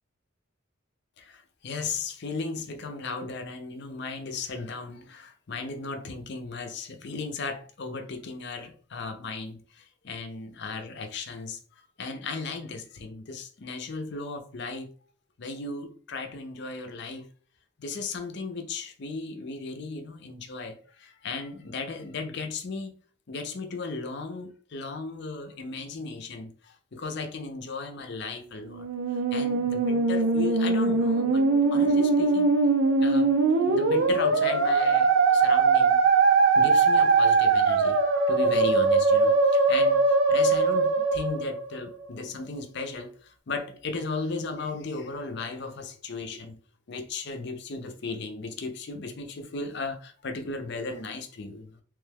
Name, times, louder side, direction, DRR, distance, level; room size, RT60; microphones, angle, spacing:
voice 1, 1.2-14.9 15.4-17.3 17.8-22.9 23.3-28.9 29.3-32.5 33.0-36.0 36.5-38.0 38.3-46.6 46.9-51.8, left 3 dB, 60° left, 0.5 m, -36 dB
Musical instrument, 28.7-42.0, right 4 dB, 75° right, 0.5 m, -21 dB
3.2 x 2.2 x 3.3 m
head